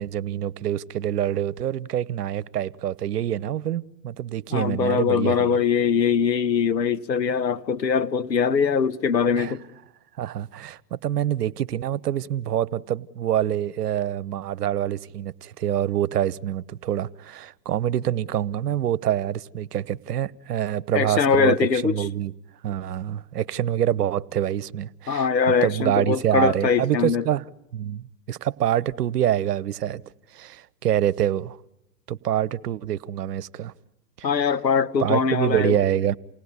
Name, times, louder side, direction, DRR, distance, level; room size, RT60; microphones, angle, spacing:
voice 1, 0.0-5.6 9.4-9.5 10.2-22.3 22.6-25.3 25.6-27.5 27.7-30.0 30.3-31.6 32.1-33.7 34.2-34.3 35.0-36.2, right 11 dB, 70° right, 1.1 m, -26 dB
voice 2, 4.5-9.6 20.9-22.1 25.1-27.2 34.2-35.8, left 6 dB, 90° left, 1.3 m, -22 dB
29.0 x 19.0 x 9.8 m
hypercardioid pair, 115°, 49 cm